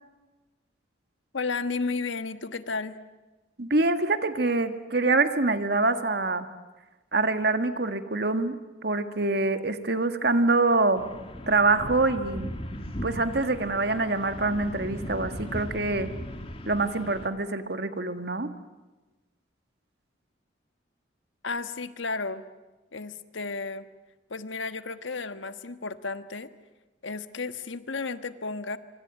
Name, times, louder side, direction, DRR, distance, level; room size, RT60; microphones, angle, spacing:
voice 1, 1.3-3.0 21.4-22.4 22.9-23.9 24.3-26.5 27.0-28.8, left 4 dB, 85° left, 10 dB, 1.4 m, -33 dB
voice 2, 3.6-6.5 7.1-8.6 8.8-11.0 11.5-12.5 13.0-16.1 16.7-18.5, right 3 dB, 55° right, 8 dB, 1.8 m, -25 dB
sound 1, 10.9-17.3, equal, 30° left, 2.2 m, -38 dB
26.0 x 25.0 x 9.1 m, 1.2 s
head